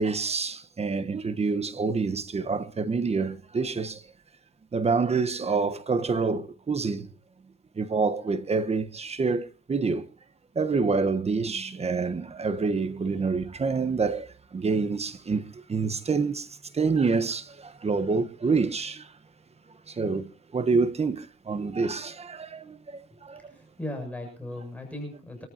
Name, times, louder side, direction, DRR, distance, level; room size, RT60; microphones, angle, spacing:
voice 1, 0.0-4.0 4.7-7.1 7.7-10.1 10.5-19.1 19.9-23.5, right 4 dB, 30° right, 1.3 m, -27 dB
voice 2, 23.4-25.5, left 1 dB, 5° left, 7.7 m, -37 dB
27.0 x 14.5 x 2.9 m
cardioid pair, 90°, 20 cm